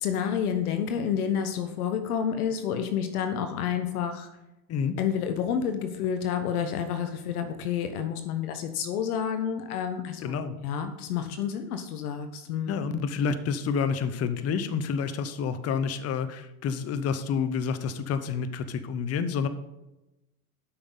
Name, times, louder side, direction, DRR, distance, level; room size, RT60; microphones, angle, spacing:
voice 1, 0.0-4.3 5.0-10.4 10.6-12.9, left 8 dB, 80° left, 8 dB, 1.2 m, -29 dB
voice 2, 10.2-10.6 12.7-19.5, left 6 dB, 35° left, 12 dB, 0.9 m, -29 dB
12.5 x 6.2 x 4.0 m, 0.94 s
hypercardioid pair, 105°, 44 cm